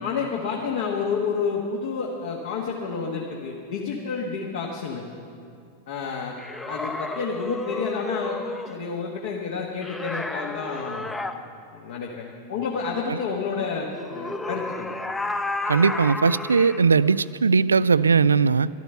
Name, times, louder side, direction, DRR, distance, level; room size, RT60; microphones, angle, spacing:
voice 1, 0.0-5.0 5.9-6.4 6.7-8.4 8.7-11.1 11.7-15.1, left 5 dB, 55° left, -1 dB, 1.5 m, -29 dB
sound 1, 6.4-8.8 9.8-11.4 13.9-16.8, left 2 dB, 10° left, 0.7 m, -32 dB
voice 2, 15.7-18.7, right 5 dB, 75° right, 19 dB, 0.3 m, -19 dB
13.0 x 12.5 x 6.9 m, 2.4 s
figure-of-eight pair, 90°, 0 cm